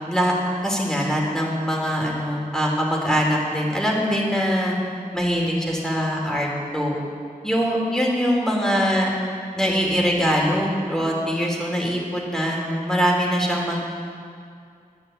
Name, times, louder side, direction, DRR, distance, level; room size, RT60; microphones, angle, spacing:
voice 1, 0.6-4.7 5.1-6.9 7.4-9.1 9.5-13.8, equal, 5° left, -2 dB, 3.3 m, -22 dB
11.5 x 9.2 x 8.3 m, 2.3 s
wide cardioid pair, 55°, 15 cm